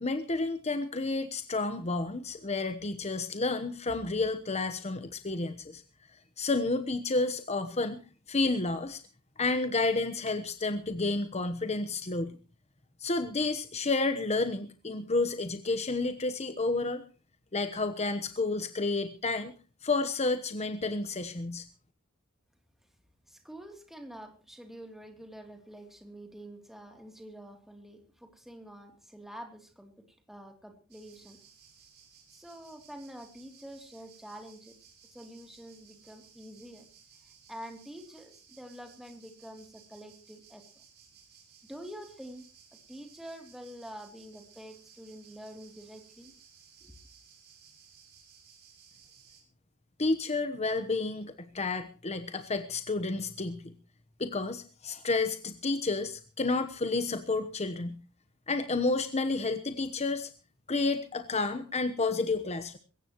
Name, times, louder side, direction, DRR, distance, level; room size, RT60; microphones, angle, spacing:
voice 1, 0.0-5.8 6.4-8.0 8.3-9.0 9.4-12.4 13.0-17.0 17.5-19.5 19.8-21.7 50.0-53.7 54.2-58.0 58.5-60.3 60.7-62.8, left 3 dB, 30° left, 9 dB, 1.1 m, -30 dB
voice 2, 23.3-31.4 32.3-34.8 35.0-36.8 37.5-40.6 41.7-42.4 42.9-46.3 46.8-46.9, equal, ahead, 4 dB, 3.0 m, -47 dB
sound 1, 30.9-49.4, right 7 dB, 50° right, 6.9 m, -58 dB
22.0 x 17.5 x 3.0 m, 0.36 s
head